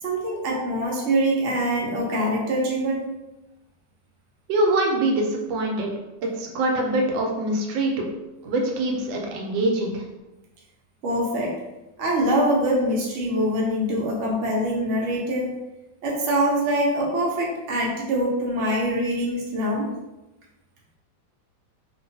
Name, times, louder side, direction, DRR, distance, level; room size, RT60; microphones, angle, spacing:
voice 1, 0.0-3.0 11.0-11.5 12.0-15.5 16.0-19.9, right 1 dB, 65° right, -3 dB, 0.7 m, -24 dB
voice 2, 4.5-5.9 6.2-8.1 8.4-10.0, right 2 dB, 85° right, 1 dB, 1.3 m, -24 dB
2.9 x 2.2 x 2.6 m, 1.0 s
omnidirectional pair, 2.0 m